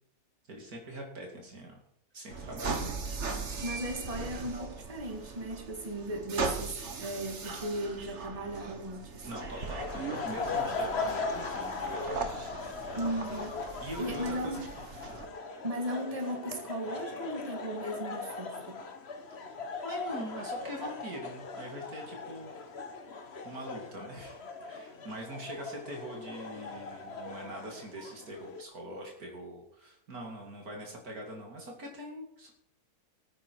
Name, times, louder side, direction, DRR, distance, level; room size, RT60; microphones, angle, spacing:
voice 1, 0.5-1.7 2.1-3.2 9.2-12.7 13.0-13.4 13.8-14.6 19.8-22.5 23.4-32.5, equal, 70° right, 0 dB, 3.0 m, -43 dB
sound 1, 2.3-15.3, right 4 dB, 50° right, 1.7 m, -39 dB
voice 2, 3.6-9.2 12.9-13.6 14.0-14.6 15.6-18.8, right 1 dB, 25° right, 3 dB, 2.0 m, -36 dB
sound 2, 9.2-28.6, left 4 dB, 45° left, 1.3 m, -39 dB
19.0 x 9.3 x 4.7 m, 0.76 s
omnidirectional pair, 1.6 m